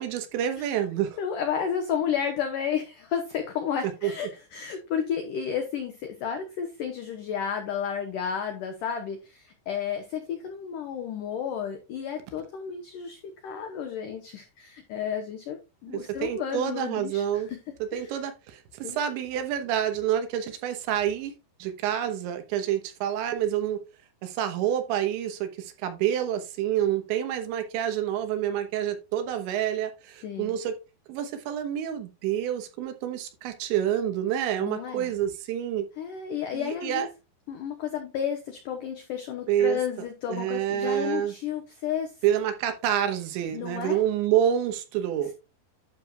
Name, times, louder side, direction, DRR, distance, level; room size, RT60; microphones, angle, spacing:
voice 1, 0.0-1.2 4.0-4.1 15.9-17.5 17.9-21.3 21.6-23.8 24.2-30.7 31.1-35.9 36.5-37.1 39.5-39.8 40.3-41.3 42.2-45.3, right 10 dB, 85° right, 3.4 m, -28 dB
voice 2, 1.2-17.4 17.9-18.1 18.8-19.0 30.2-30.6 34.6-35.1 36.0-37.1 37.5-42.2 43.5-44.0, left 8 dB, 85° left, 1.8 m, -32 dB
11.0 x 6.5 x 2.4 m
omnidirectional pair, 5.2 m